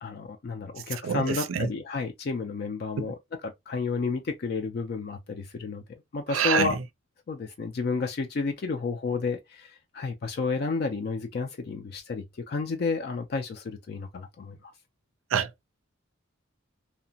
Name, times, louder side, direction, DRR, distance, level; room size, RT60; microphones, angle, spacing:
voice 1, 0.0-3.2 3.4-5.8 6.1-6.8 7.3-14.7, left 4 dB, 50° left, 0.3 m, -31 dB
voice 2, 1.0-1.7 6.3-6.8 15.3-15.5, right 7 dB, 85° right, 0.4 m, -26 dB
2.8 x 2.1 x 2.6 m
head